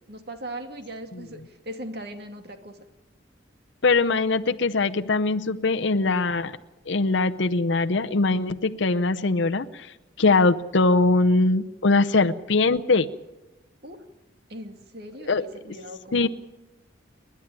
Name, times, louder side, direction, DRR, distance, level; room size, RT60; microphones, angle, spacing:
voice 1, 0.1-2.8 13.8-14.0 14.5-16.3, right 1 dB, 55° right, 6 dB, 2.3 m, -39 dB
voice 2, 3.8-6.5 6.9-9.9 10.2-13.1 15.3-15.4 16.1-16.3, left 3 dB, 70° left, 7 dB, 0.7 m, -21 dB
29.5 x 10.5 x 9.0 m, 1.0 s
head